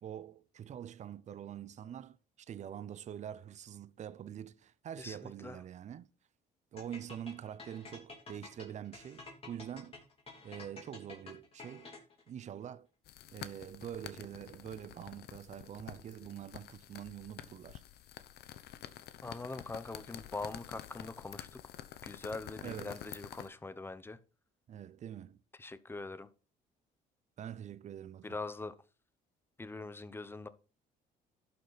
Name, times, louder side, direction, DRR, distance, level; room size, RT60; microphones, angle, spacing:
voice 1, 0.0-6.1 6.7-10.0 10.4-11.9 12.3-12.9 13.3-17.8 22.6-23.0 24.7-25.4 27.4-28.4, right 10 dB, 45° right, 0.6 m, -45 dB
voice 2, 5.0-5.6 19.2-21.6 22.0-24.2 25.6-26.3 28.2-28.7 29.6-30.5, left 3 dB, 15° left, 0.8 m, -43 dB
sound 1, 6.8-12.3, left 3 dB, 35° left, 2.9 m, -50 dB
sound 2, 13.1-23.5, left 12 dB, 70° left, 0.9 m, -49 dB
11.5 x 6.7 x 4.1 m
cardioid pair, 110°, 17 cm